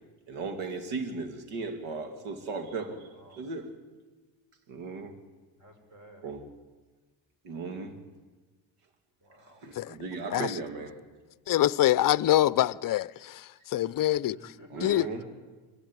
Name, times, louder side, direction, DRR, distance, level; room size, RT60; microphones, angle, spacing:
voice 1, 0.3-3.7 4.7-5.1 6.2-6.4 7.4-8.0 9.6-11.0 14.7-15.2, right 4 dB, 80° right, 2.8 m, -36 dB
voice 2, 2.8-3.5 5.6-6.3 9.2-9.7 14.3-15.2, right 1 dB, 35° right, 5.2 m, -52 dB
voice 3, 11.5-14.4 14.8-15.1, left 13 dB, 45° left, 0.6 m, -25 dB
23.0 x 15.5 x 9.2 m
cardioid pair, 95°, 50 cm